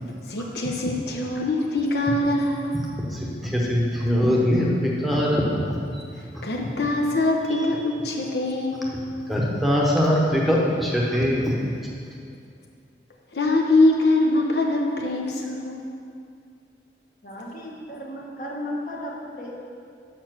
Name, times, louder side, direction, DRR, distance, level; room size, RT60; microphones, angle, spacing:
voice 1, 0.3-2.7 6.4-8.9 13.3-15.9, left 2 dB, 65° left, 0 dB, 0.8 m, -23 dB
voice 2, 3.1-6.0 7.5-7.6 9.3-11.7, equal, ahead, -4 dB, 0.9 m, -22 dB
voice 3, 17.2-19.6, left 1 dB, 50° left, -2 dB, 1.2 m, -34 dB
6.9 x 5.7 x 6.1 m, 2.4 s
head